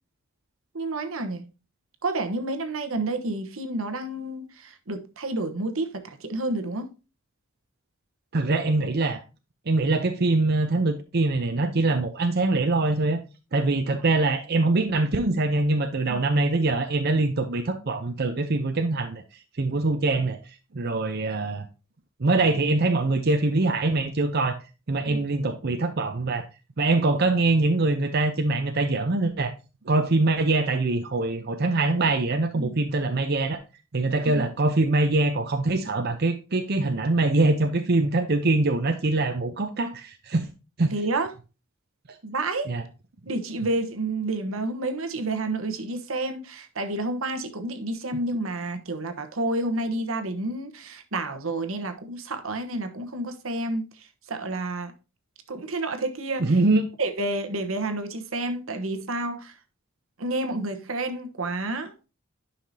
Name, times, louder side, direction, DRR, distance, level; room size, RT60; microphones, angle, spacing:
voice 1, 0.7-1.5 2.0-6.9 16.1-16.2 25.1-25.3 32.6-32.7 34.2-34.4 40.9-41.3 42.2-42.7 43.2-54.9 55.5-56.5 57.0-59.5 60.2-62.1, right 2 dB, 75° right, 1.1 m, -30 dB
voice 2, 8.3-9.2 9.7-13.2 13.5-19.2 19.6-20.4 20.7-21.7 22.2-24.6 24.9-26.5 26.8-29.5 29.9-33.6 33.9-40.5 40.8-40.9 42.7-42.8 56.4-56.9, right 2 dB, 50° right, 0.7 m, -23 dB
10.5 x 5.7 x 2.8 m
head